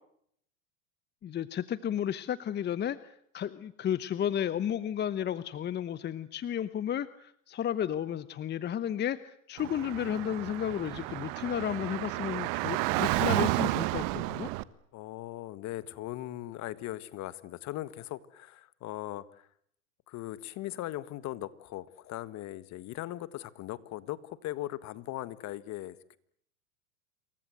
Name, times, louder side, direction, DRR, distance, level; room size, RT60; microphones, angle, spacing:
voice 1, 1.2-14.5, left 9 dB, 25° left, 16 dB, 1.0 m, -33 dB
Car / Traffic noise roadway noise, 9.6-14.6, right 20 dB, 50° right, 1.4 m, -31 dB
voice 2, 14.9-19.5 20.1-26.2, left 15 dB, 45° left, 17 dB, 1.7 m, -39 dB
28.0 x 22.5 x 7.9 m, 0.70 s
hypercardioid pair, 110°, 40 cm